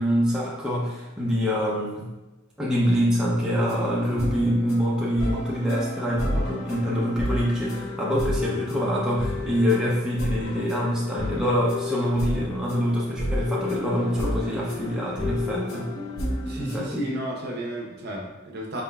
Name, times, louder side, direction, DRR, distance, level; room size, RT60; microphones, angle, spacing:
voice 1, 0.0-2.1 2.6-15.9 16.6-17.0, equal, 5° right, -6 dB, 0.5 m, -25 dB
sound 1, 3.6-16.8, left 1 dB, 65° left, 0.7 m, -32 dB
voice 2, 16.5-18.8, right 1 dB, 50° right, -1 dB, 0.7 m, -33 dB
4.0 x 3.6 x 2.3 m, 1.1 s
head